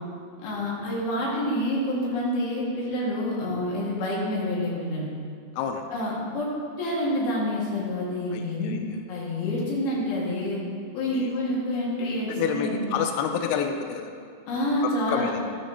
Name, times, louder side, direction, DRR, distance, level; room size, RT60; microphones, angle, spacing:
voice 1, 0.4-5.1 5.9-6.5 6.8-8.8 9.1-10.6 10.9-12.8 14.5-15.3, left 1 dB, 60° left, -5 dB, 3.8 m, -28 dB
voice 2, 5.6-5.9 8.3-9.0 11.1-11.4 12.3-14.1 14.8-15.4, left 7 dB, 90° left, 5 dB, 2.2 m, -29 dB
14.0 x 9.5 x 3.0 m, 2.4 s
omnidirectional pair, 5.4 m